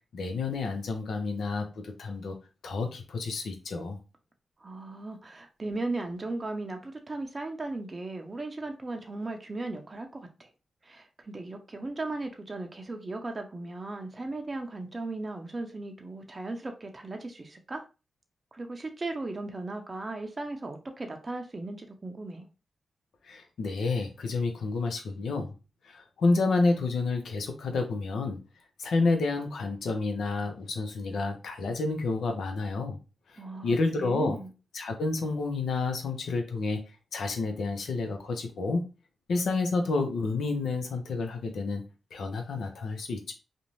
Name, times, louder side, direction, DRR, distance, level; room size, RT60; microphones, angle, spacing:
voice 1, 0.1-2.4 2.6-4.0 23.3-25.5 25.8-28.4 28.8-33.0 33.6-34.4 34.7-36.8 37.1-38.8 39.3-41.8 42.1-43.3, left 3 dB, 80° left, 5 dB, 0.6 m, -29 dB
voice 2, 4.6-10.5 10.8-17.8 18.5-22.5 33.4-34.5, right 2 dB, 40° right, 4 dB, 0.5 m, -37 dB
2.5 x 2.1 x 3.0 m, 0.31 s
supercardioid pair, 45°, 0 cm